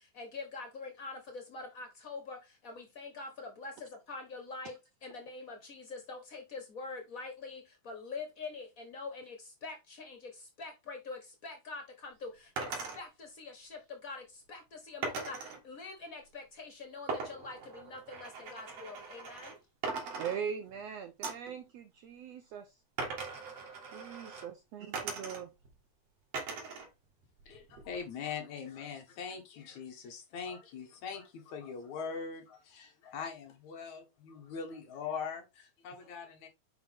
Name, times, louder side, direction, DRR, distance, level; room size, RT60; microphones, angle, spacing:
voice 1, 0.2-1.2 1.5-2.4 2.6-3.3 3.6-3.7 4.1-4.7 5.0-7.6 7.9-9.3 9.6-9.7 10.1-10.2 10.6-11.8 12.2-12.3 12.6-12.7 12.9-13.1 13.4-13.7 14.0-14.2 14.5-14.6 14.9-15.4 15.7-17.6 17.9-19.5, left 3 dB, 85° left, 0.7 m, -44 dB
sound 1, 12.6-13.0 15.0-15.6 17.1-19.6 19.8-20.8 21.2-21.5 23.0-24.5 24.9-25.7 26.3-26.9 27.2-28.0, right 4 dB, 55° right, 2.8 m, -40 dB
voice 2, 20.2-22.8 23.9-25.5, right 7 dB, 75° right, 1.5 m, -41 dB
voice 3, 27.5-36.5, left 6 dB, 65° left, 2.9 m, -42 dB
7.0 x 5.2 x 3.6 m
omnidirectional pair, 3.8 m